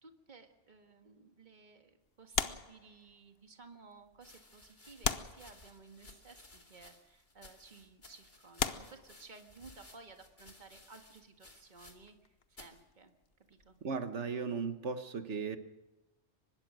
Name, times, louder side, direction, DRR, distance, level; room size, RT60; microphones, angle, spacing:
voice 1, 0.0-13.1 13.5-13.8, right 4 dB, 40° right, 5 dB, 1.8 m, -56 dB
sound 1, 2.3-3.4 4.2-4.3 5.0-6.1 7.1-7.3 7.9-8.0 8.6-9.8 11.7-13.5 13.7-14.0, left 7 dB, 60° left, 1.1 m, -38 dB
sound 2, 3.1-3.2 4.1-12.2 12.5-12.8 13.6-14.0, left 2 dB, 40° left, 2.7 m, -59 dB
voice 2, 13.8-15.6, right 5 dB, 80° right, 9 dB, 1.7 m, -36 dB
24.0 x 20.5 x 6.4 m, 0.98 s
omnidirectional pair, 1.2 m